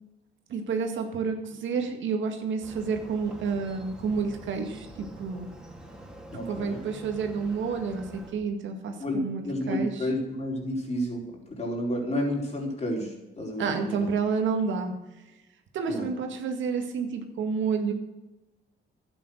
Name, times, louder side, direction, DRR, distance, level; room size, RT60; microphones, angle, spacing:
voice 1, 0.5-5.5 6.5-10.1 13.6-14.9 15.7-17.9, right 5 dB, 70° right, 5 dB, 1.9 m, -30 dB
Motorcycle, 2.6-8.3, equal, 5° right, 3.4 m, -46 dB
voice 2, 6.3-6.8 9.0-14.1 15.9-16.1, equal, 35° left, -1 dB, 4.5 m, -31 dB
11.5 x 9.2 x 6.5 m, 1.0 s
cardioid pair, 90°, 20 cm